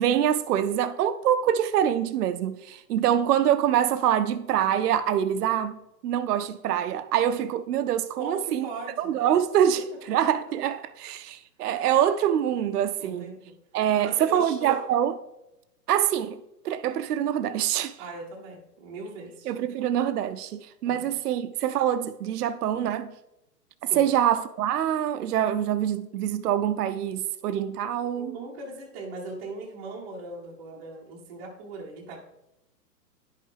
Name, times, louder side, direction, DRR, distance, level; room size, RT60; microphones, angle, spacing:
voice 1, 0.0-5.8 6.0-8.7 9.0-13.3 13.7-15.1 15.9-16.3 16.6-17.9 19.5-23.1 23.8-28.4, right 10 dB, 70° right, 0.6 m, -25 dB
voice 2, 8.2-9.1 10.1-10.2 13.0-13.5 13.9-14.9 18.0-19.5 20.9-21.1 23.8-24.1 28.1-32.2, right 3 dB, 15° right, 0.6 m, -39 dB
10.5 x 5.6 x 3.3 m
hypercardioid pair, 160°, 48 cm